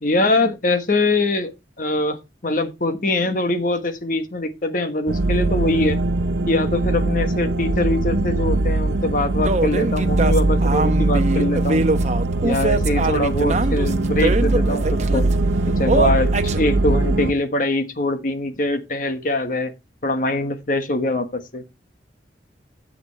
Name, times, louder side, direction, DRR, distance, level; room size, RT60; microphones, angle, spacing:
voice 1, 0.0-1.5 1.8-6.0 6.5-11.8 12.4-15.3 15.8-16.3 16.6-19.7 20.0-21.6, left 2 dB, 50° left, 1.4 m, -23 dB
sound 1, 5.1-17.3, right 2 dB, 85° right, 0.7 m, -21 dB
sound 2, 9.4-15.3 15.9-16.6, right 2 dB, 40° right, 0.9 m, -23 dB
12.0 x 7.9 x 3.2 m
head